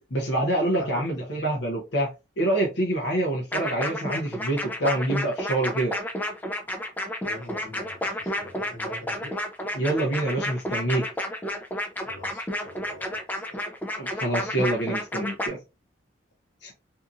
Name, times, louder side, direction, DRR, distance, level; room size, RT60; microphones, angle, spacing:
voice 1, 0.0-2.1 2.4-5.9 9.7-11.0 14.0-15.6 16.6-16.7, right 1 dB, 60° left, 0.7 m, -26 dB
voice 2, 0.8-1.2 7.2-9.4 12.0-13.8, left 1 dB, 85° left, 1.1 m, -43 dB
sound 1, 3.5-15.5, left 1 dB, 10° left, 0.3 m, -31 dB
2.7 x 2.5 x 2.4 m
head